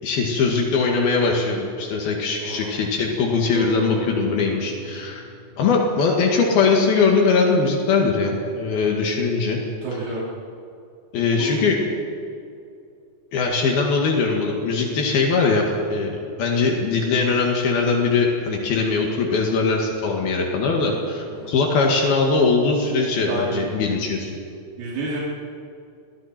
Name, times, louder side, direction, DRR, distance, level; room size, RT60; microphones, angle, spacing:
voice 1, 0.0-5.2 5.6-9.6 11.1-11.9 13.3-16.1 16.4-24.3, left 4 dB, 80° left, 0 dB, 3.9 m, -21 dB
voice 2, 2.4-2.7 9.8-10.2 11.4-11.5 20.8-21.5 23.3-23.6 24.8-25.2, right 2 dB, 85° right, -6 dB, 5.1 m, -30 dB
sound 1, 3.5-8.5 8.8-8.9, right 4 dB, 35° right, 4.4 m, -38 dB
29.5 x 23.0 x 4.5 m, 2.5 s
omnidirectional pair, 4.3 m